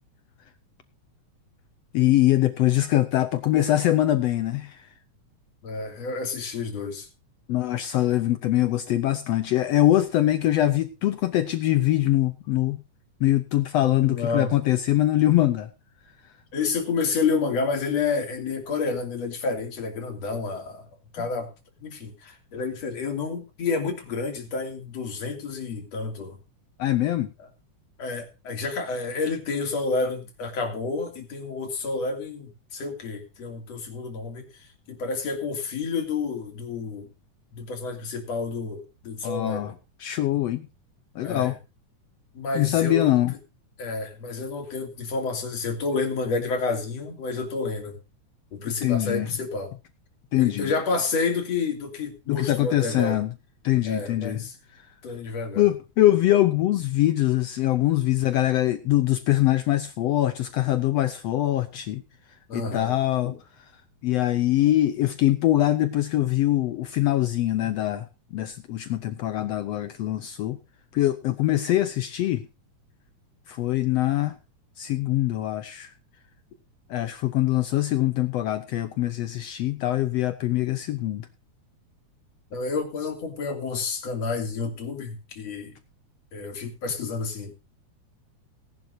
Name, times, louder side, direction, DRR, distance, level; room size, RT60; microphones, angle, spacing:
voice 1, 1.9-4.9 7.5-12.8 13.2-15.7 26.8-27.3 39.2-39.7 40.0-40.7 41.2-41.5 42.6-43.3 48.8-49.3 50.3-50.7 52.3-53.3 53.6-54.4 54.8-54.9 55.6-62.0 62.5-63.3 64.0-68.1 68.3-70.6 70.9-72.5 73.5-74.4 74.8-75.9 76.9-81.3, left 14 dB, 70° left, 11 dB, 1.6 m, -23 dB
voice 2, 5.6-7.1 13.8-14.5 16.5-20.8 21.1-21.5 21.8-26.4 28.0-37.1 37.5-39.8 41.2-41.6 42.3-43.1 43.8-48.0 48.5-49.7 50.4-53.2 53.9-54.6 55.0-55.7 62.5-62.9 63.3-63.4 82.5-85.7 86.3-87.5, left 4 dB, 55° left, 4 dB, 3.9 m, -29 dB
19.0 x 11.5 x 2.7 m, 0.29 s
omnidirectional pair, 3.5 m